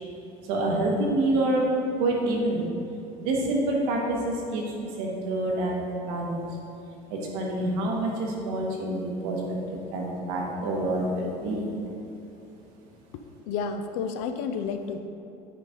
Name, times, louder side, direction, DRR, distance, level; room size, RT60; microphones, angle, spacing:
voice 1, 0.4-1.6 2.0-2.7 3.2-6.5 7.1-9.6 9.9-11.7, right 2 dB, 80° right, -2 dB, 1.4 m, -27 dB
voice 2, 13.5-15.0, left 6 dB, 70° left, 7 dB, 0.4 m, -30 dB
9.0 x 4.2 x 3.8 m, 2.8 s
cardioid pair, 165°, 14 cm